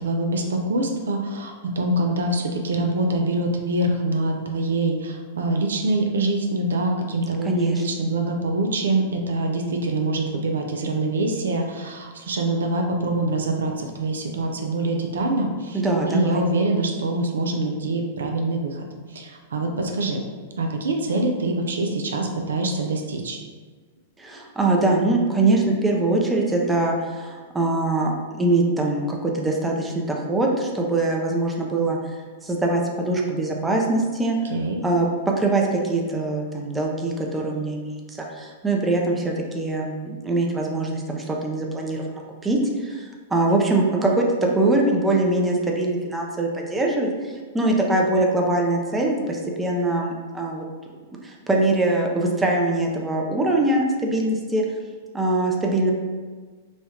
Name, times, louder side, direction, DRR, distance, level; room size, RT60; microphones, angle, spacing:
voice 1, 0.0-20.2 20.6-23.4 34.5-34.8, right 2 dB, 85° right, 3 dB, 0.4 m, -25 dB
voice 2, 7.4-7.8 15.7-16.4 24.2-32.0 32.4-34.4 34.8-50.7 51.2-54.6 55.1-55.9, right 2 dB, 10° right, 0 dB, 0.5 m, -23 dB
3.1 x 2.3 x 2.8 m, 1.4 s
hypercardioid pair, 120°, 0 cm